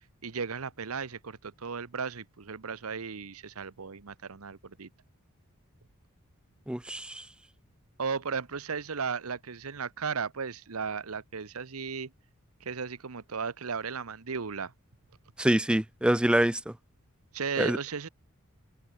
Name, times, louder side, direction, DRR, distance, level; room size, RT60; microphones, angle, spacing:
voice 1, 0.2-4.9 8.0-12.1 12.6-14.7 17.3-18.1, right 5 dB, 90° right, 0.9 m, -35 dB
voice 2, 6.7-7.2 15.4-16.7 17.6-17.8, right 1 dB, 5° right, 0.4 m, -25 dB
head